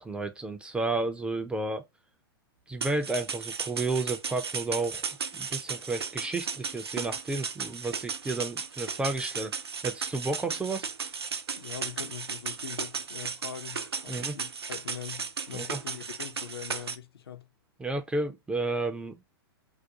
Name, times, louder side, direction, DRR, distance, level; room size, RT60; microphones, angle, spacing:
voice 1, 0.0-1.8 2.7-5.0 5.3-9.5 9.8-10.9 14.1-14.4 15.5-15.8 17.8-19.2, right 2 dB, 10° right, 0.3 m, -32 dB
sound 1, 2.8-17.0, right 5 dB, 90° right, 0.4 m, -35 dB
voice 2, 11.6-17.5, left 8 dB, 75° left, 0.6 m, -42 dB
2.4 x 2.2 x 2.6 m
figure-of-eight pair, 105°, 13 cm